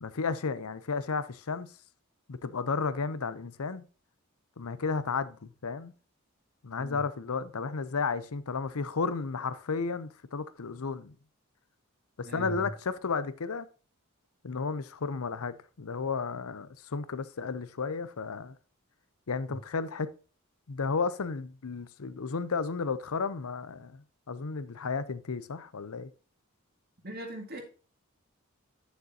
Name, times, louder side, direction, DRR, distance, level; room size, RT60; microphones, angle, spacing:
voice 1, 0.0-1.7 2.3-3.8 4.6-5.9 6.6-11.1 12.2-13.7 14.4-18.6 19.3-20.1 20.7-26.1, left 4 dB, 80° left, 0.7 m, -33 dB
voice 2, 12.2-12.7 19.5-19.6 27.0-27.6, right 1 dB, 45° right, 2.3 m, -39 dB
9.3 x 6.7 x 2.8 m
head